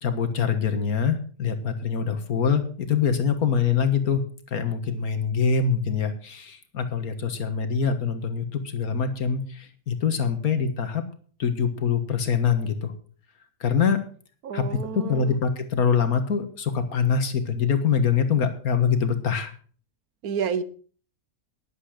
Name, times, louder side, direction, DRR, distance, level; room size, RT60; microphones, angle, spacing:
voice 1, 0.0-4.2 4.5-11.0 11.4-12.9 13.6-14.0 14.5-14.6 14.9-19.5, left 6 dB, 85° left, 8 dB, 2.0 m, -24 dB
voice 2, 14.4-15.4 20.2-20.6, right 7 dB, 90° right, 14 dB, 1.4 m, -29 dB
12.0 x 11.0 x 5.0 m, 0.43 s
omnidirectional pair, 1.5 m